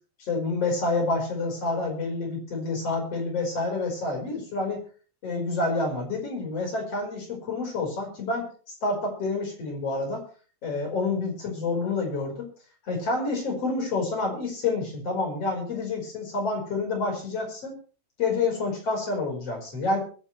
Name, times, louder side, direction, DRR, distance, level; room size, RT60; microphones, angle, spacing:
voice 1, 0.2-4.8 5.2-8.5 8.8-10.2 10.6-12.5 12.9-17.8 18.2-20.0, left 3 dB, 35° left, 2 dB, 5.6 m, -28 dB
22.5 x 11.0 x 3.3 m, 0.39 s
omnidirectional pair, 4.7 m